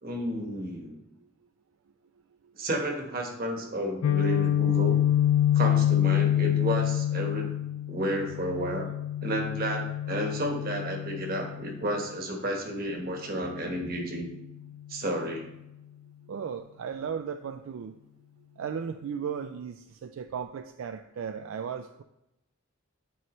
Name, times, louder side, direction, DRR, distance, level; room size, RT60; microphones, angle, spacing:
voice 1, 0.0-1.0 2.5-5.0 5.5-7.5 7.9-8.9 9.2-14.3 14.9-15.5, right 1 dB, 45° right, 2 dB, 1.2 m, -31 dB
Guitar, 4.0-11.9, left 11 dB, 80° left, 0.3 m, -26 dB
voice 2, 16.3-18.0 18.6-22.0, right 7 dB, 70° right, 8 dB, 0.3 m, -36 dB
9.1 x 4.6 x 3.0 m, 0.90 s
head